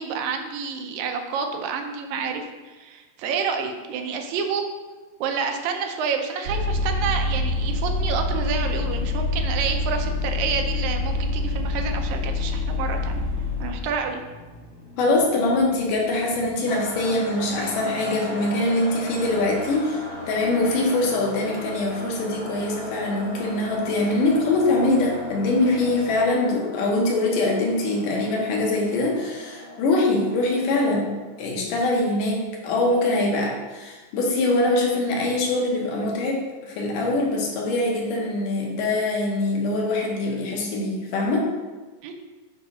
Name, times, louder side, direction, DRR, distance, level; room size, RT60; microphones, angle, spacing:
voice 1, 0.0-4.6 5.2-13.2 13.6-14.2 42.0-42.1, right 6 dB, 90° right, 4 dB, 2.5 m, -29 dB
Vehicle, 6.5-13.8, left 2 dB, 65° right, 1.7 m, -26 dB
sound 1, 12.3-26.1, left 1 dB, 35° left, 1.0 m, -41 dB
voice 2, 15.0-31.1 31.4-41.5, left 2 dB, 80° left, -1 dB, 2.7 m, -23 dB
sound 2, 16.7-31.4, left 1 dB, 60° left, 2.5 m, -39 dB
7.5 x 3.8 x 5.6 m, 1.3 s
omnidirectional pair, 3.9 m